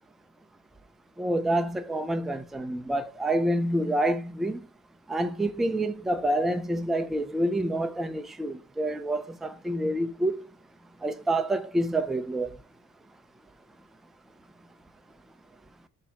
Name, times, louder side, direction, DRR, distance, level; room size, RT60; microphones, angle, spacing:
voice 1, 1.2-4.7 5.1-10.4 11.0-12.6, right 1 dB, ahead, 0.3 m, -27 dB
7.4 x 2.8 x 5.6 m
cardioid pair, 165°, 33 cm